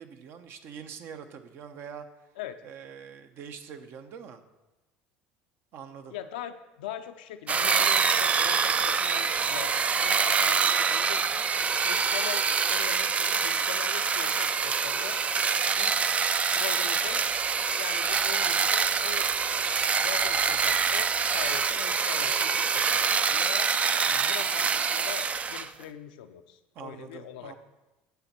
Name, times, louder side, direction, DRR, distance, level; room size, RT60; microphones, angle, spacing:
voice 1, 0.0-2.1 2.6-4.4 5.7-6.1 24.1-24.4 26.7-27.6, right 7 dB, 55° right, 8 dB, 0.8 m, -44 dB
voice 2, 6.1-11.4 11.8-15.2 15.8-16.0 16.5-17.2 17.8-19.3 20.0-23.7 24.3-27.6, left 11 dB, 90° left, 8 dB, 0.5 m, -41 dB
sound 1, 7.5-25.7, right 5 dB, 30° right, 0.4 m, -25 dB
9.2 x 7.1 x 4.2 m, 1.0 s
supercardioid pair, 90°, 4 cm